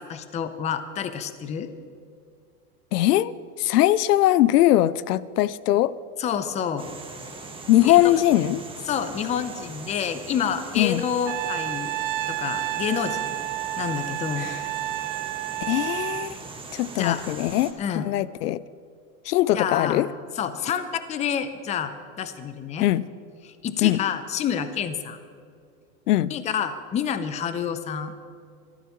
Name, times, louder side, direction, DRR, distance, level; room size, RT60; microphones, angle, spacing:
voice 1, 0.0-1.7 6.2-6.9 7.8-8.2 8.9-11.9 12.3-13.4 13.8-14.5 17.0-17.2 17.8-18.1 19.5-20.1 20.4-22.9 23.4-25.2 26.3-28.1, left 8 dB, 15° left, 11 dB, 0.6 m, -28 dB
voice 2, 2.9-3.3 3.6-5.9 7.7-8.6 10.8-11.0 14.4-14.6 15.6-16.4 16.7-18.6 19.3-20.1 22.8-23.0 23.8-24.0 26.1-26.3, left 14 dB, 75° left, 20 dB, 0.6 m, -21 dB
sound 1, 6.8-17.7, right 3 dB, 10° right, 1.5 m, -40 dB
Trumpet, 11.3-16.3, right 17 dB, 40° right, 0.4 m, -30 dB
26.5 x 13.0 x 3.1 m, 2.3 s
supercardioid pair, 130°, 47 cm